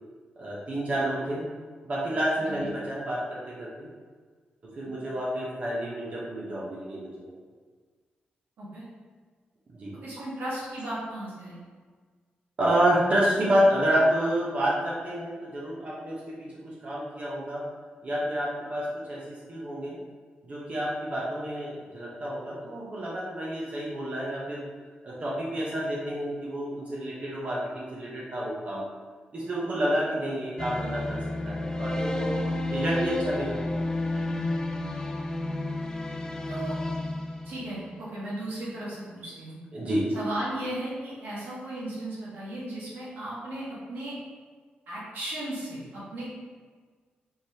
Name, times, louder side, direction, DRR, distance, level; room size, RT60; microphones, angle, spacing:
voice 1, 0.4-1.5 1.8-3.9 4.6-7.3 9.8-10.0 12.6-17.7 18.0-20.0 20.4-24.6 25.0-28.9 29.3-32.4 32.7-33.6 39.7-40.2, right 1 dB, 40° right, -5 dB, 0.8 m, -29 dB
voice 2, 10.0-11.6 36.5-36.7 37.4-39.6 40.1-44.1 44.9-46.3, right 1 dB, 80° right, -8 dB, 1.4 m, -36 dB
sound 1, 30.6-38.1, left 2 dB, 20° left, 0.3 m, -31 dB
4.5 x 3.3 x 2.7 m, 1.5 s
wide cardioid pair, 125°, 3 cm